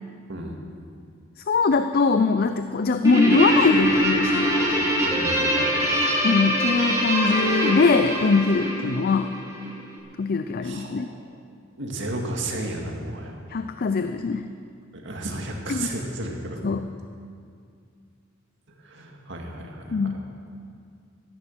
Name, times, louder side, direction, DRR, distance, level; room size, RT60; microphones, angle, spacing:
voice 1, 1.5-4.5 6.2-9.3 10.2-11.1 13.5-14.5 15.7-15.9 16.6-16.9 19.9-20.2, left 4 dB, 50° left, 9 dB, 0.5 m, -22 dB
Guitar, 3.0-9.7, equal, 15° right, 3.0 m, -23 dB
voice 2, 5.0-5.7 10.6-11.1 11.8-13.4 14.9-16.6 18.8-20.2, right 1 dB, 65° right, 1 dB, 2.1 m, -33 dB
14.0 x 10.5 x 7.3 m, 2.3 s
head